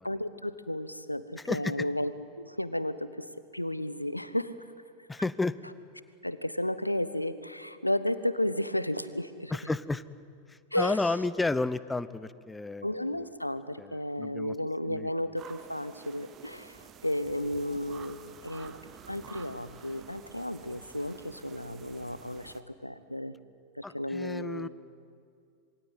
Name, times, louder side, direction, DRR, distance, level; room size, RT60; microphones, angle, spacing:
voice 1, 0.0-2.1 2.4-3.3 3.5-4.6 6.2-9.5 10.7-11.0 12.8-18.8 19.1-23.3 23.8-24.7, left 1 dB, 85° left, 14 dB, 1.1 m, -33 dB
voice 2, 1.5-1.8 5.1-5.5 9.5-10.0 10.5-13.0 13.8-14.5 14.9-15.1 23.8-24.7, left 3 dB, 10° left, 17 dB, 0.8 m, -32 dB
sound 1, 15.4-22.6, right 8 dB, 30° right, 1.6 m, -50 dB
27.0 x 23.0 x 9.4 m, 2.3 s
figure-of-eight pair, 90°, 0 cm